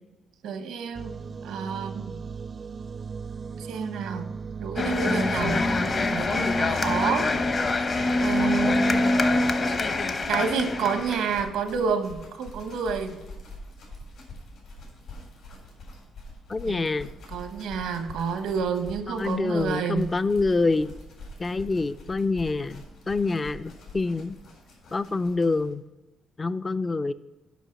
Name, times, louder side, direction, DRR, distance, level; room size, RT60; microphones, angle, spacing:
voice 1, 0.4-2.2 3.6-4.3 4.6-7.3 8.2-9.1 10.3-13.2 16.7-16.9 17.3-20.1, right 6 dB, 85° right, 8 dB, 1.0 m, -29 dB
sound 1, 0.9-6.1, right 5 dB, 40° right, 0.4 m, -37 dB
sound 2, 4.8-11.5, left 2 dB, 40° left, 0.9 m, -24 dB
sound 3, 9.5-25.7, left 1 dB, 80° left, 3.7 m, -45 dB
voice 2, 16.5-17.1 19.1-20.9 21.4-24.4 24.9-25.8 26.4-27.1, left 3 dB, 25° left, 13 dB, 0.3 m, -26 dB
8.2 x 5.7 x 7.5 m, 1.0 s
cardioid pair, 90°, 0 cm